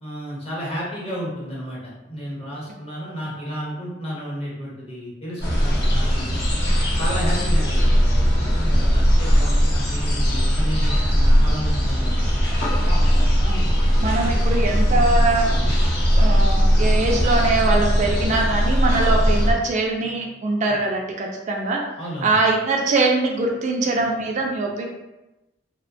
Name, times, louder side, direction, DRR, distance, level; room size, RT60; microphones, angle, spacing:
voice 1, 0.0-6.4 6.9-8.3 8.5-12.1 22.0-22.3, equal, 35° left, -6 dB, 0.9 m, -32 dB
sound 1, 5.4-19.5, equal, 60° left, 0.7 m, -19 dB
voice 2, 13.4-15.5 16.1-21.8 22.2-24.8, right 3 dB, 40° right, 0 dB, 0.3 m, -22 dB
2.6 x 2.1 x 2.5 m, 1.0 s
head